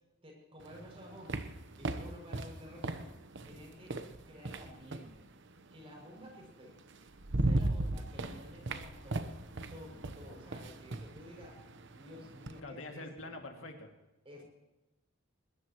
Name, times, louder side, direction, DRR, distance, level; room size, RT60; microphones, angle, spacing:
voice 1, 0.2-1.4 1.8-3.1 3.4-3.9 4.3-5.2 5.7-6.7 7.4-9.3 9.7-11.6 11.9-13.3 14.2-14.4, equal, 30° right, 0 dB, 6.7 m, -52 dB
sound 1, 0.6-5.2 6.4-6.5 6.9-12.6, right 2 dB, 60° right, 1.0 m, -37 dB
voice 2, 12.6-13.9, left 2 dB, 70° left, 3 dB, 2.4 m, -45 dB
22.5 x 21.0 x 3.1 m, 1.0 s
head